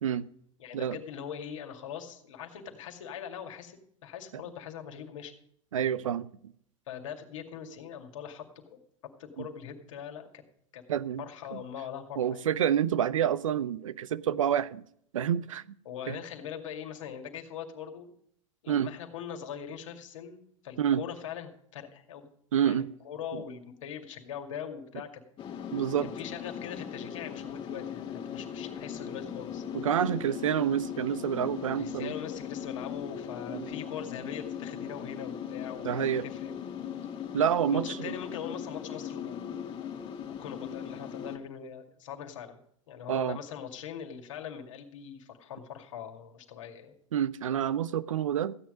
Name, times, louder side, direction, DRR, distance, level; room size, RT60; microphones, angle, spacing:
voice 1, 0.6-5.3 6.9-10.4 10.7-10.8 11.2-12.5 15.9-18.1 18.6-22.3 22.6-25.2 26.0-29.6 31.7-36.5 37.7-39.6 40.4-42.6 42.9-47.0, left 8 dB, 70° left, 2.3 m, -42 dB
voice 2, 5.7-6.3 9.4-9.5 10.9-11.2 11.5-11.6 12.2-14.8 15.1-15.8 16.1-16.2 18.7-18.9 20.8-21.0 22.5-22.9 23.3-23.4 25.7-26.1 29.7-32.1 33.5-33.7 35.8-36.2 37.3-38.1 43.1-43.4 47.1-48.5, right 9 dB, 75° right, 0.7 m, -28 dB
sound 1, 25.4-41.4, left 8 dB, 30° left, 1.7 m, -39 dB
15.5 x 9.4 x 5.1 m
figure-of-eight pair, 90°, 17 cm